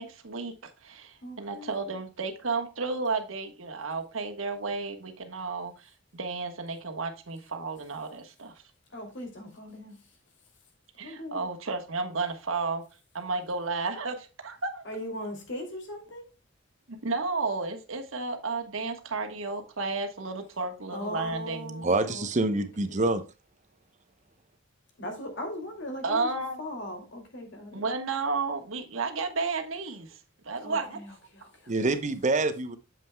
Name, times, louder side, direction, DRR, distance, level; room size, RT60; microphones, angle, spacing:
voice 1, 0.0-8.6 11.0-12.8 13.1-14.8 16.9-21.8 26.0-26.6 27.7-30.2 30.4-31.0, right 4 dB, 85° right, 1.3 m, -32 dB
voice 2, 1.2-1.9 8.9-10.0 11.0-11.4 14.8-16.2 20.9-23.1 25.0-26.3 26.6-27.8 30.6-31.7, left 1 dB, 60° left, 2.8 m, -39 dB
voice 3, 21.8-23.2 31.7-32.8, right 2 dB, 35° right, 0.8 m, -26 dB
8.8 x 7.4 x 2.2 m
head